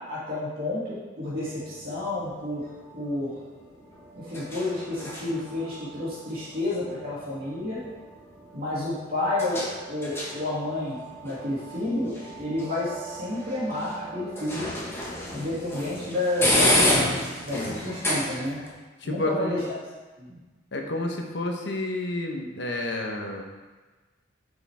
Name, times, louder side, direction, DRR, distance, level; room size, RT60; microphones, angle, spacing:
voice 1, 0.0-2.6 2.9-3.3 4.2-7.8 8.5-14.7 15.3-17.2 17.4-18.6 19.0-19.6 20.2-20.4, left 2 dB, 50° right, -9 dB, 2.6 m, -30 dB
sound 1, 1.2-18.7, left 1 dB, 15° left, 1.5 m, -31 dB
voice 2, 19.0-19.6 20.7-23.4, left 2 dB, 65° left, 2 dB, 1.2 m, -30 dB
9.3 x 6.8 x 3.6 m, 1.3 s
head